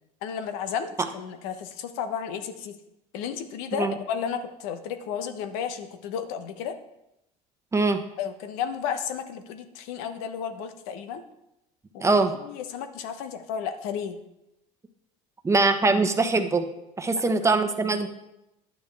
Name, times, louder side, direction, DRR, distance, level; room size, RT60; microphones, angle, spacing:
voice 1, 0.2-2.8 3.1-6.8 8.2-11.2 11.9-14.2 17.1-17.2, left 7 dB, 80° left, 9 dB, 1.0 m, -33 dB
voice 2, 7.7-8.0 12.0-12.3 15.4-16.6 17.0-18.1, right 3 dB, 15° right, 7 dB, 0.9 m, -22 dB
10.5 x 8.8 x 3.4 m, 0.87 s
supercardioid pair, 105°, 18 cm